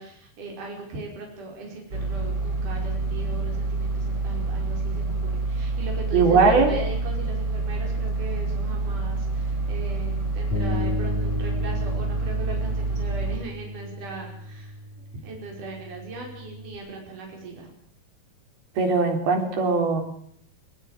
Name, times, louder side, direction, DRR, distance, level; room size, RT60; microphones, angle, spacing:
voice 1, 0.0-14.8 15.2-17.7, right 3 dB, 55° right, 0 dB, 6.7 m, -39 dB
sound 1, 1.9-13.4, right 3 dB, 30° right, 4.6 m, -27 dB
voice 2, 6.1-6.7 18.8-20.0, right 4 dB, 75° right, 4 dB, 5.9 m, -20 dB
Bass guitar, 10.5-16.8, left 2 dB, 50° left, 3.8 m, -34 dB
22.0 x 20.5 x 7.4 m, 0.64 s
omnidirectional pair, 4.4 m